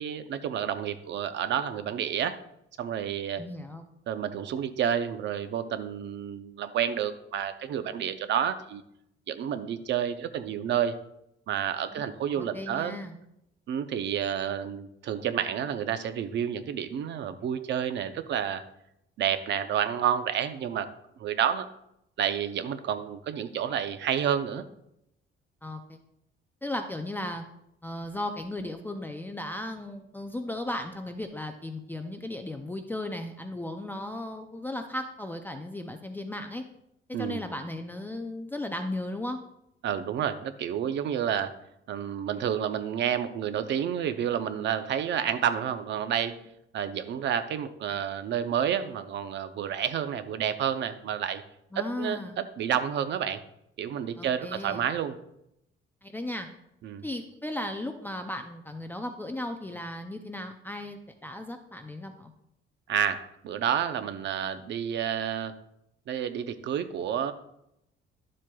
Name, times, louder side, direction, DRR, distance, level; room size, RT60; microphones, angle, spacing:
voice 1, 0.0-2.4 2.8-3.4 4.1-8.8 9.3-11.0 11.5-13.0 13.7-18.6 19.2-20.9 21.2-21.7 22.2-24.6 37.1-37.4 39.8-41.5 41.9-46.3 46.7-51.4 51.8-53.4 53.8-55.1 56.8-57.0 62.9-65.5 66.1-67.3, right 9 dB, 60° right, 10 dB, 0.6 m, -30 dB
voice 2, 3.4-3.8 11.9-12.0 12.4-13.2 25.6-26.0 26.6-27.4 27.8-36.6 37.1-39.4 51.7-52.4 54.2-54.8 56.0-56.5 57.0-62.3, left 1 dB, 10° left, 5 dB, 0.4 m, -36 dB
11.5 x 7.5 x 2.3 m, 0.81 s
cardioid pair, 155°, 21 cm